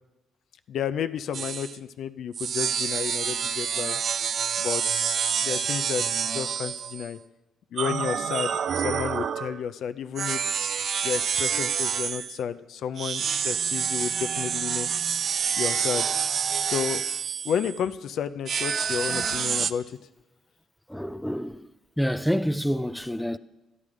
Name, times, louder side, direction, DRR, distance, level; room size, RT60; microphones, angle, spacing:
voice 1, 0.7-4.0 4.6-4.8 5.4-7.2 7.7-10.6 11.0-14.9 15.6-16.1 16.6-17.0 17.4-19.8, left 8 dB, 70° left, 0.5 m, -31 dB
sound 1, 1.3-1.8 2.3-7.1 7.8-9.6 10.2-12.4 13.0-17.8 18.5-19.7, right 7 dB, 55° right, 0.4 m, -28 dB
voice 2, 20.9-21.7 22.0-23.4, equal, 5° left, 0.4 m, -27 dB
12.0 x 11.0 x 4.9 m
cardioid pair, 90°, 0 cm